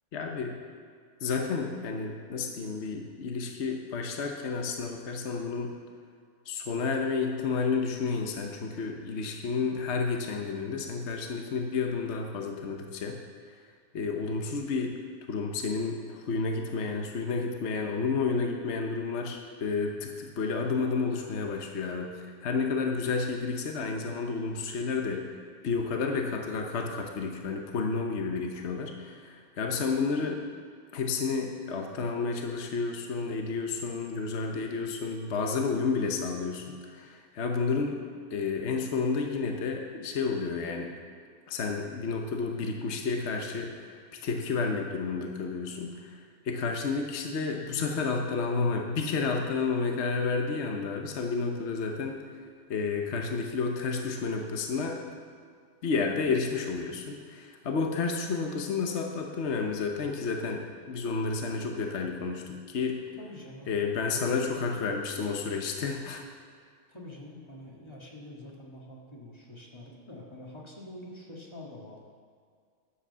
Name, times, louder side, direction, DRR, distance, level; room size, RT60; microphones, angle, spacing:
voice 1, 0.1-0.6 1.2-5.7 6.5-13.2 13.9-15.0 15.3-25.3 25.6-30.4 30.9-36.6 36.9-38.0 38.3-40.9 41.5-44.0 44.2-46.2 46.4-52.2 52.7-55.0 55.8-63.0 63.7-66.2, left 4 dB, 60° left, 3 dB, 1.2 m, -31 dB
voice 2, 63.2-64.5 64.9-65.0 66.9-72.1, left 1 dB, 20° left, -3 dB, 1.8 m, -46 dB
10.5 x 7.7 x 6.7 m, 2.1 s
omnidirectional pair, 1.4 m